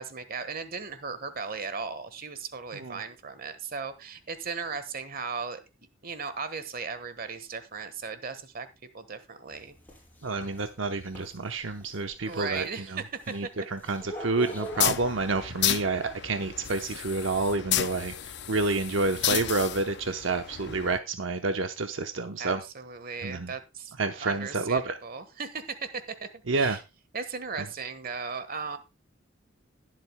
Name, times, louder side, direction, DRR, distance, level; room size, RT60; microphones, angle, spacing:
voice 1, 0.0-5.6 6.0-8.7 8.9-9.8 12.2-13.0 13.6-13.7 22.4-26.8 27.1-28.8, right 5 dB, 50° right, 11 dB, 1.4 m, -37 dB
sound 1, 9.5-15.1, right 1 dB, 10° left, 4.9 m, -43 dB
voice 2, 10.2-13.0 13.3-22.6 23.2-23.5 24.0-25.0 26.5-26.8, right 3 dB, 75° right, 7 dB, 0.9 m, -29 dB
sound 2, 14.7-21.0, left 11 dB, 60° left, 0.6 m, -32 dB
21.0 x 7.7 x 2.2 m, 0.26 s
head